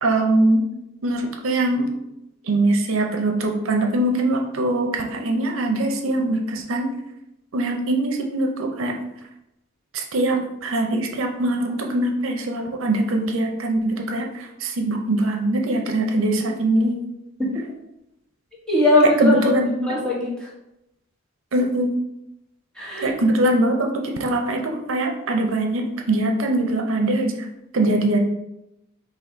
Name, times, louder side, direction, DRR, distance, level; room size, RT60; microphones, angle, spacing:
voice 1, 0.0-0.6 1.0-1.9 2.4-7.0 7.5-9.0 9.9-17.0 19.2-19.9 21.5-22.0 23.0-27.5 27.7-28.2, right 1 dB, 75° right, 2 dB, 0.6 m, -22 dB
voice 2, 18.7-20.5 22.7-23.1, left 2 dB, 5° left, -6 dB, 1.1 m, -20 dB
4.0 x 2.7 x 4.4 m, 0.86 s
head